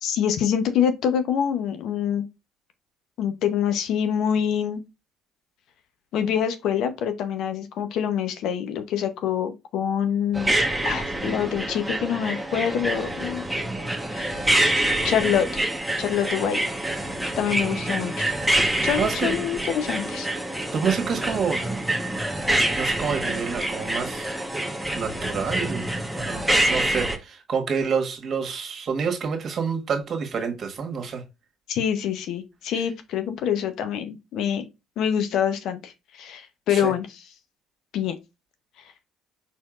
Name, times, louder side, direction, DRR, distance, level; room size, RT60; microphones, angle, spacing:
voice 1, 0.0-2.3 3.2-4.8 6.1-10.6 10.8-13.5 14.1-15.5 16.0-16.6 17.4-18.3 18.8-20.3 31.7-34.6 35.0-37.2 37.9-38.1, left 8 dB, 65° left, 0.8 m, -26 dB
sound 1, 10.3-27.2, right 1 dB, ahead, 1.0 m, -26 dB
voice 2, 19.0-19.4 20.7-21.6 22.8-24.4 24.9-25.9 26.2-31.2 36.7-36.9, right 6 dB, 50° right, 1.5 m, -28 dB
4.5 x 4.4 x 2.4 m
hypercardioid pair, 60°, 0 cm